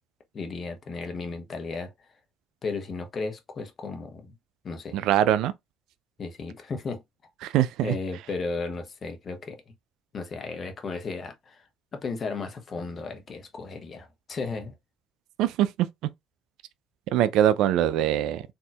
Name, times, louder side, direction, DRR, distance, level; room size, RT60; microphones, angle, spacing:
voice 1, 0.3-1.9 2.6-4.3 4.6-5.0 6.2-7.0 7.8-9.6 10.1-11.6 11.9-14.7, left 4 dB, 40° left, 0.9 m, -34 dB
voice 2, 4.9-5.5 7.4-7.9 15.4-15.9 17.1-18.4, right 11 dB, 60° right, 0.3 m, -22 dB
3.9 x 2.7 x 2.3 m
figure-of-eight pair, 55°, 0 cm